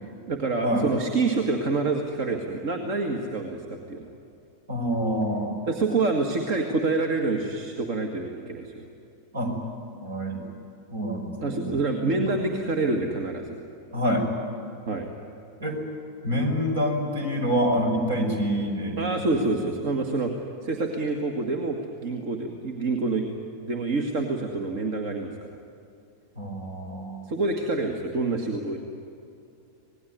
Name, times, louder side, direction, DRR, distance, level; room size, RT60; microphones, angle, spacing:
voice 1, 0.0-4.1 5.7-8.9 11.4-13.6 14.9-15.1 19.0-20.3 20.6-23.3 23.7-25.6 27.3-28.8, right 3 dB, 45° right, 4 dB, 1.9 m, -27 dB
voice 2, 4.7-5.6 9.3-9.5 10.0-10.4 10.9-12.6 13.9-14.3 15.6-15.8 16.2-19.4 26.4-27.3, equal, 65° right, 3 dB, 5.7 m, -27 dB
26.5 x 19.0 x 9.7 m, 2.7 s
figure-of-eight pair, 90°, 0 cm